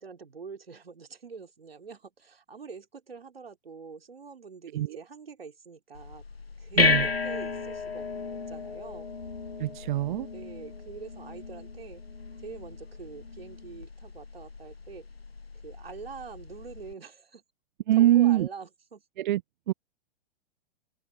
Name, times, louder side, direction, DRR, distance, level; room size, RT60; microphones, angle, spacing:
voice 1, 0.0-6.2 6.6-8.1 8.5-9.1 10.3-12.0 12.4-15.1 15.6-17.4 17.9-19.0, right 5 dB, 80° right, 3.6 m, -45 dB
sound 1, 5.9-16.9, left 4 dB, 90° left, 1.1 m, -33 dB
voice 2, 6.8-7.1 9.6-10.3 17.9-18.5 19.2-19.4 19.7-19.8, right 13 dB, 55° right, 0.6 m, -23 dB
open air
figure-of-eight pair, 105°, 29 cm